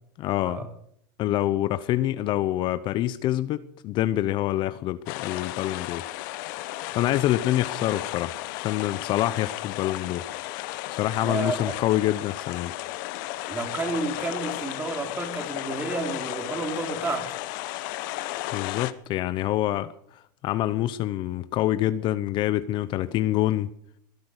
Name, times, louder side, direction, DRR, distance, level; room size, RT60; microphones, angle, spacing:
voice 1, 0.2-0.7 1.2-6.1 6.9-10.3 11.0-12.7 18.5-23.7, left 14 dB, 45° left, 14 dB, 0.8 m, -26 dB
sound 1, 5.1-18.9, left 17 dB, 65° left, 1.1 m, -34 dB
voice 2, 11.2-11.8 13.5-17.4, right 3 dB, 15° right, 5 dB, 3.2 m, -31 dB
21.5 x 10.5 x 6.6 m, 0.68 s
supercardioid pair, 120°, 11 cm